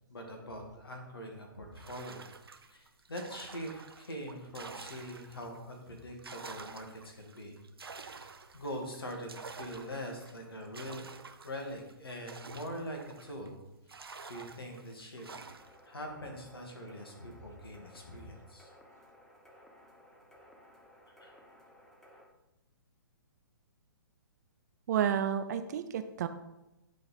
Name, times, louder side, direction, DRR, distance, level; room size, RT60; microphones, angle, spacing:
voice 1, 0.1-2.3 2.6-7.6 7.9-8.2 8.5-11.0 11.4-13.6 13.9-14.0 14.3-15.4 15.9-18.7 21.2-21.4, equal, 80° left, 2 dB, 2.1 m, -43 dB
sound 1, 1.8-5.6 6.0-13.5 13.9-15.9, right 4 dB, 85° right, 0.6 m, -49 dB
sound 2, 15.4-22.2, left 1 dB, 5° left, 0.9 m, -58 dB
voice 2, 24.9-26.3, right 9 dB, 45° right, 9 dB, 0.7 m, -30 dB
10.5 x 4.2 x 4.2 m, 0.94 s
figure-of-eight pair, 130°, 12 cm